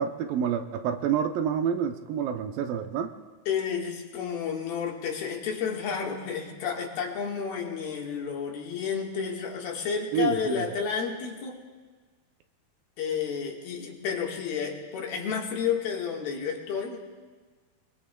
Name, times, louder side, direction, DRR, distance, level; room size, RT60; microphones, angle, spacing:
voice 1, 0.0-3.1 10.1-10.7, right 8 dB, 80° right, 6 dB, 2.2 m, -28 dB
voice 2, 3.5-11.6 13.0-17.1, left 6 dB, 75° left, 0 dB, 3.3 m, -31 dB
24.5 x 23.0 x 2.2 m, 1.4 s
omnidirectional pair, 4.4 m